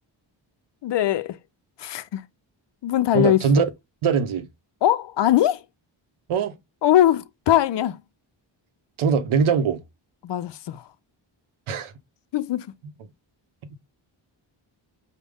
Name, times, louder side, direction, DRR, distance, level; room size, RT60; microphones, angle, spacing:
voice 1, 0.8-1.4 1.8-2.2 2.8-3.4 4.8-5.6 6.8-8.0 10.2-10.8 12.3-12.7, left 12 dB, 60° left, 0.5 m, -21 dB
voice 2, 3.1-3.6 4.0-4.5 6.3-6.6 9.0-9.8 11.7-11.9, right 6 dB, 85° right, 0.8 m, -21 dB
5.0 x 2.2 x 3.4 m
cardioid pair, 85°, 48 cm